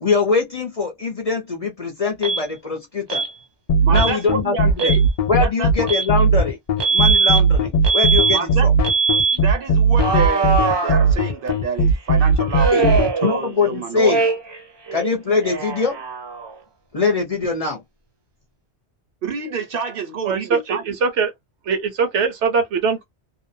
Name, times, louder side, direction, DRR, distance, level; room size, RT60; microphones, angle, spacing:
voice 1, 0.0-3.2 3.9-5.0 5.3-6.6 6.9-8.7 12.7-12.9 13.2-14.2 14.9-16.0 16.9-17.8, left 4 dB, 40° left, 0.6 m, -22 dB
Alarm, 2.2-2.4 3.1-3.3 3.9-4.2 4.7-5.0 5.9-6.1 6.8-7.4 7.8-8.4 8.8-9.4 10.0-11.5 12.5-13.7 14.0-14.6 14.9-16.6, right 4 dB, 40° right, 0.4 m, -21 dB
sound 1, 3.7-13.1, right 2 dB, 75° left, 0.3 m, -17 dB
voice 2, 3.8-5.1 5.4-5.7 8.3-8.7 9.3-14.3 19.2-20.8, right 5 dB, 60° right, 0.8 m, -27 dB
voice 3, 20.2-21.3 21.7-23.0, right 5 dB, 80° right, 1.1 m, -21 dB
2.6 x 2.0 x 2.6 m
omnidirectional pair, 1.2 m